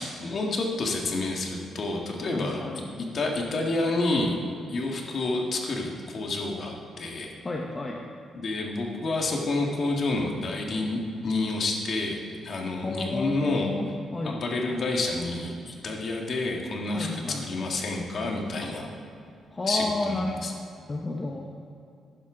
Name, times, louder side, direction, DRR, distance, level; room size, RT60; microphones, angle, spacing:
voice 1, 0.0-2.6 3.0-4.4 4.7-7.3 8.3-13.7 14.2-18.9 19.6-20.5, left 2 dB, 45° left, 0 dB, 1.6 m, -29 dB
voice 2, 2.3-2.8 7.4-8.1 12.8-14.4 16.9-17.5 19.5-20.3 20.9-21.4, left 2 dB, 20° left, 0 dB, 0.8 m, -31 dB
12.0 x 10.0 x 3.8 m, 2.6 s
cardioid pair, 145°, 0 cm